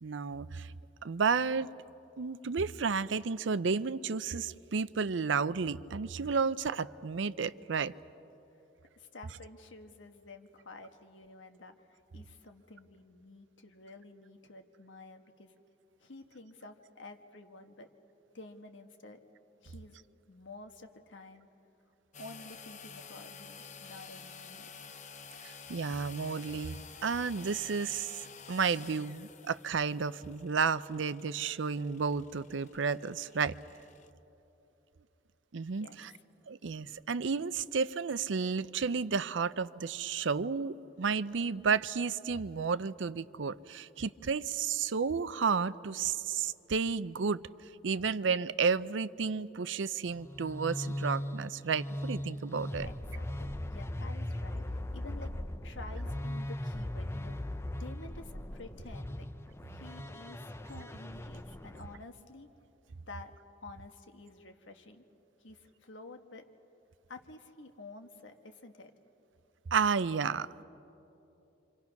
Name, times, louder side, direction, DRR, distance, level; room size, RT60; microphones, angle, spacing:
voice 1, 0.0-0.7 1.0-1.7 2.2-7.9 25.4-33.5 35.5-36.1 36.5-47.4 47.8-52.9 69.7-70.5, right 5 dB, 75° right, 16 dB, 0.6 m, -32 dB
voice 2, 9.0-15.5 16.0-17.9 18.3-19.2 19.6-20.0 20.3-21.5 22.2-24.9 35.7-36.2 52.8-55.3 55.6-59.3 59.7-62.5 63.1-63.3 63.6-65.0 65.4-66.4 67.1-68.9, left 2 dB, 80° left, 6 dB, 1.5 m, -50 dB
sound 1, 22.1-34.1, left 5 dB, 40° left, 0.9 m, -51 dB
sound 2, 50.2-62.0, left 1 dB, 15° left, 0.6 m, -39 dB
28.0 x 26.5 x 5.9 m, 2.9 s
head